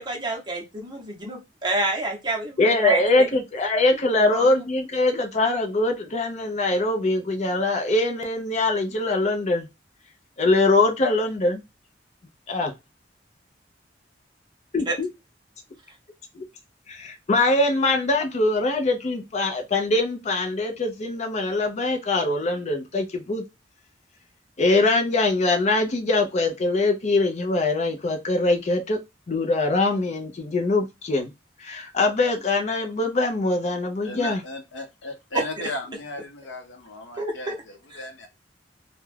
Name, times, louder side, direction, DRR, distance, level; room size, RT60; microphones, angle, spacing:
voice 1, 0.0-3.3 4.2-4.5 14.9-15.0 35.3-35.4 37.2-37.6 37.9-38.1, right 2 dB, 25° right, 0.7 m, -28 dB
voice 2, 2.6-9.7 10.4-11.6 12.5-12.7 14.7-15.1 16.3-16.4 16.9-23.4 24.6-29.0 29.3-31.3 31.6-34.4, left 2 dB, 40° left, 0.4 m, -23 dB
voice 3, 34.0-38.3, left 2 dB, 85° left, 0.7 m, -36 dB
2.3 x 2.0 x 3.1 m
head